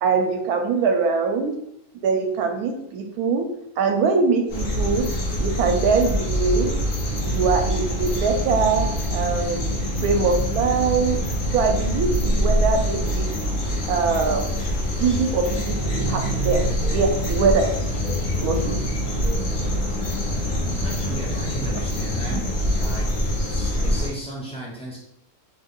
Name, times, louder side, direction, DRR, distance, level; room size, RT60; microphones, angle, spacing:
voice 1, 0.0-1.6 1.9-3.5 3.8-5.1 5.4-6.7 7.2-11.2 11.5-13.3 13.9-14.5 15.0-16.6 16.9-17.7 18.4-18.8 22.3-22.4, right 5 dB, 80° right, 4 dB, 1.0 m, -22 dB
sound 1, 4.5-24.1, equal, 45° left, 0.6 m, -24 dB
voice 2, 20.8-22.4 22.8-23.1 23.5-25.0, right 1 dB, 5° left, -5 dB, 0.4 m, -35 dB
3.0 x 2.3 x 3.6 m, 0.79 s
omnidirectional pair, 1.6 m